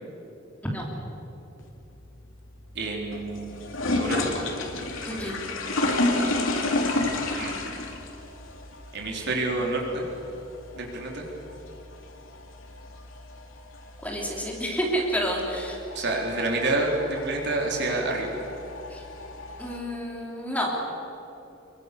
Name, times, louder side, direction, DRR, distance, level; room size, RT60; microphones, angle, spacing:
sound 1, 1.6-19.8, left 2 dB, 85° left, 2.9 m, -32 dB
voice 1, 2.8-3.7 3.9-4.3 7.3-7.6 8.9-10.1 10.8-11.2 15.9-18.4, right 2 dB, 60° right, 0 dB, 4.1 m, -28 dB
voice 2, 5.0-5.4 14.0-15.8 18.9-19.0 19.6-20.7, equal, 10° left, -2 dB, 3.6 m, -29 dB
26.5 x 23.5 x 6.9 m, 3.0 s
head